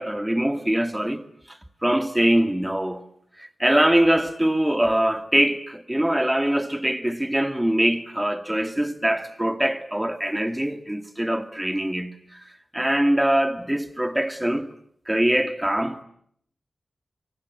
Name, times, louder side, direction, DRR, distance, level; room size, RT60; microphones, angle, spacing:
voice 1, 0.0-3.0 3.4-12.1 12.7-14.7 15.1-16.0, right 1 dB, 10° right, 2.1 m, -23 dB
25.0 x 24.5 x 9.4 m
wide cardioid pair, 85°, 0 cm